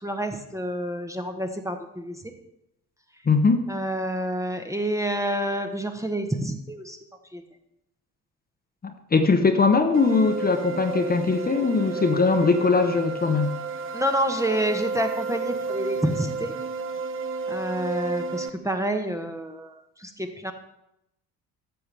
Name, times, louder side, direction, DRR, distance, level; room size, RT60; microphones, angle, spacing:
voice 1, 0.0-2.2 3.7-7.0 7.3-7.4 13.9-16.5 17.5-20.5, right 1 dB, 5° right, 5 dB, 0.9 m, -28 dB
voice 2, 3.3-3.7 8.8-13.6, left 4 dB, 20° left, 6 dB, 0.9 m, -21 dB
sound 1, 9.9-18.5, right 4 dB, 25° right, 0.7 m, -31 dB
13.5 x 7.0 x 3.4 m, 0.82 s
figure-of-eight pair, 55°, 47 cm